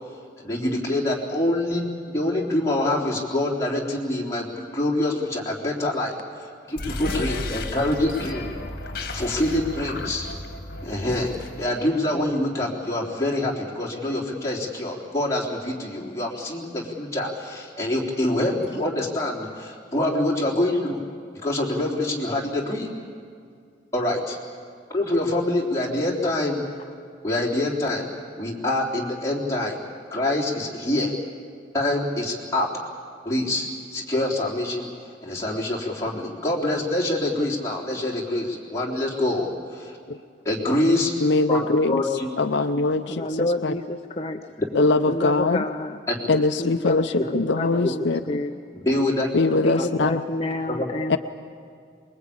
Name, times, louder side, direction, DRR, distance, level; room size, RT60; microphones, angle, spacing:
voice 1, 0.4-8.5 9.1-10.3 10.8-21.0 21.4-22.9 23.9-24.4 24.9-26.6 27.2-28.1 28.4-29.8 30.1-31.1 31.7-32.7 33.3-33.7 33.9-34.9 35.2-39.9 40.4-41.1 41.5-41.6 41.9-42.3 46.1-46.2 47.8-47.9 48.7-49.3 50.7-50.9, left 1 dB, 15° left, -4 dB, 3.5 m, -25 dB
sound 1, 6.7-11.8, left 2 dB, 50° left, 1.9 m, -33 dB
voice 2, 41.2-42.0 42.4-43.7 44.7-45.6 46.3-48.4 49.3-50.3 51.1-51.2, left 3 dB, 70° left, 8 dB, 0.7 m, -22 dB
voice 3, 43.1-44.4 45.1-45.9 46.3-48.5 49.6-51.2, left 1 dB, 30° left, 5 dB, 0.7 m, -29 dB
24.0 x 21.5 x 8.7 m, 2.3 s
head